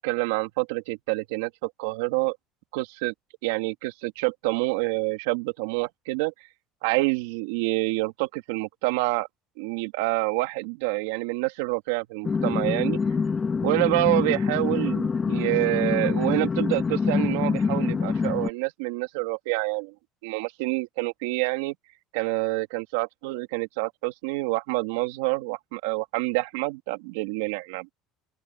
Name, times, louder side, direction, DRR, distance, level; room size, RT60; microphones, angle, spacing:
voice 1, 0.0-2.4 2.7-3.1 3.4-6.3 6.8-9.3 9.6-13.0 13.6-19.9 20.2-21.7 22.1-27.9, right 23 dB, 85° right, 2.8 m, -27 dB
sound 1, 12.2-18.5, left 5 dB, 25° left, 1.6 m, -25 dB
open air
supercardioid pair, 110°, 0 cm